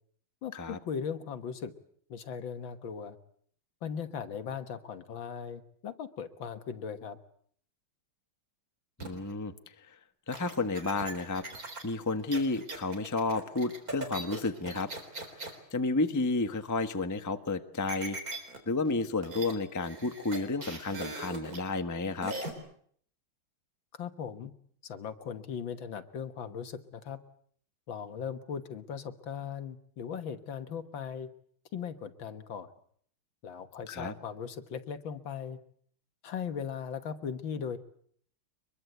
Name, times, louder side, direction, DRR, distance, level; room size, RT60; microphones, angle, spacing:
voice 1, 0.4-1.7 2.1-3.2 3.8-7.2 23.9-24.5 24.8-27.2 27.9-31.3 31.7-32.7 33.4-35.6 36.2-37.8, left 7 dB, 65° left, 10 dB, 2.0 m, -38 dB
voice 2, 9.0-9.5 9.9-10.0 10.3-11.4 11.8-14.9 15.7-18.2 18.7-22.3 33.9-34.1, left 3 dB, 10° left, 8 dB, 1.0 m, -31 dB
Speak Live Cut, 9.0-9.3 10.3-15.6 17.9-18.6 18.9-19.0 19.2-19.5 19.8-21.6 22.2-22.5, right 2 dB, 40° right, 4.2 m, -40 dB
24.5 x 22.0 x 8.0 m, 0.62 s
omnidirectional pair, 2.4 m